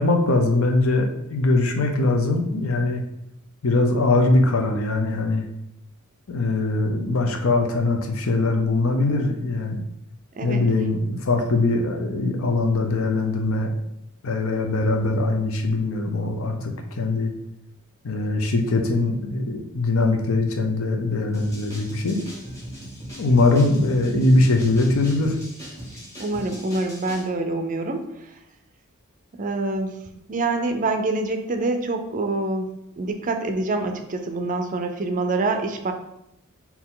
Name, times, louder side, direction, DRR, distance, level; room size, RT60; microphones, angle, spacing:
voice 1, 0.0-3.0 3.6-5.5 6.3-9.8 10.4-13.7 14.2-17.3 18.0-22.2 23.2-25.3, left 2 dB, 65° left, 4 dB, 0.6 m, -21 dB
voice 2, 10.4-10.7 26.2-28.3 29.3-35.9, right 2 dB, 35° right, 6 dB, 0.4 m, -26 dB
sound 1, 21.3-27.3, equal, 15° left, 1.5 m, -39 dB
4.4 x 2.8 x 3.8 m, 0.82 s
head